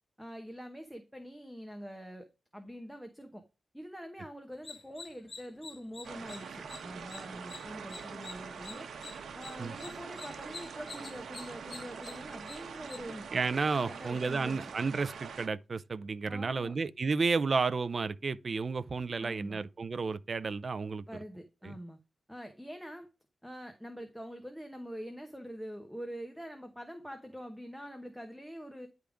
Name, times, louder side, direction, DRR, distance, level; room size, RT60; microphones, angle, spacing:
voice 1, 0.2-2.3 2.5-3.4 3.7-8.9 9.3-13.3 13.8-14.6 16.3-16.7 19.2-19.6 21.1-22.0 22.3-23.1 23.4-28.9, equal, ahead, 0.9 m, -45 dB
sound 1, 4.5-13.0, left 4 dB, 40° left, 0.9 m, -49 dB
sound 2, 6.0-15.5, right 6 dB, 90° right, 0.8 m, -44 dB
voice 2, 13.3-21.0 21.6-21.8, right 4 dB, 40° right, 0.4 m, -32 dB
10.0 x 3.5 x 4.9 m
wide cardioid pair, 145°, 0 cm